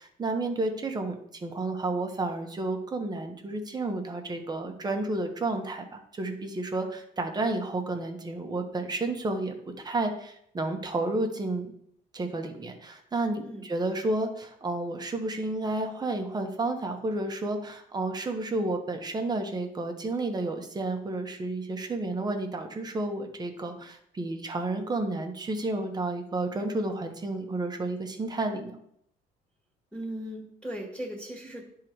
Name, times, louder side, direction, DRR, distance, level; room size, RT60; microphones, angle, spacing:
voice 1, 0.0-11.7 12.1-28.7, right 2 dB, 25° right, 4 dB, 1.2 m, -31 dB
voice 2, 29.9-31.7, equal, 5° left, -2 dB, 1.8 m, -38 dB
10.5 x 3.8 x 4.6 m, 0.72 s
cardioid pair, 110°, 17 cm